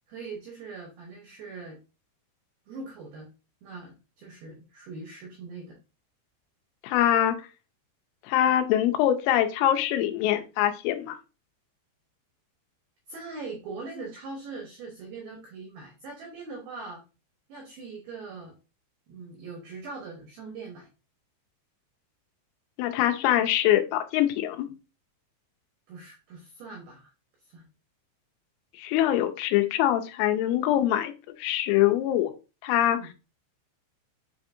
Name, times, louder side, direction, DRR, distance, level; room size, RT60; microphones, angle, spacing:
voice 1, 0.1-1.8 2.7-3.3 3.6-5.8 13.1-17.0 17.5-18.5 19.1-20.9 25.9-27.1 27.5-27.6 32.9-33.1, right 3 dB, 90° right, 1 dB, 2.1 m, -41 dB
voice 2, 6.8-7.5 8.3-11.2 22.8-24.7 28.8-31.1 31.4-32.3 32.6-33.0, left 12 dB, 90° left, 7 dB, 3.2 m, -24 dB
7.7 x 2.7 x 2.5 m, 0.31 s
omnidirectional pair, 5.6 m